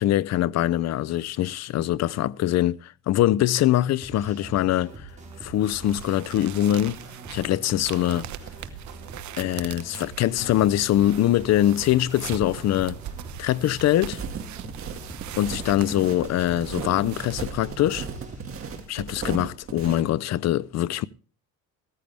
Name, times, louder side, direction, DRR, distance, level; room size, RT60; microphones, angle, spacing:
voice 1, 0.0-5.1 5.4-7.0 7.3-8.3 9.4-13.0 13.4-14.2 15.4-18.1 18.9-21.1, left 13 dB, 50° left, 0.5 m, -23 dB
sound 1, 4.0-18.8, right 2 dB, 20° right, 5.2 m, -44 dB
sound 2, 5.2-17.5, right 11 dB, 55° right, 1.0 m, -41 dB
sound 3, 14.0-20.0, right 6 dB, 40° right, 2.0 m, -36 dB
15.0 x 14.0 x 3.4 m
cardioid pair, 110°, 35 cm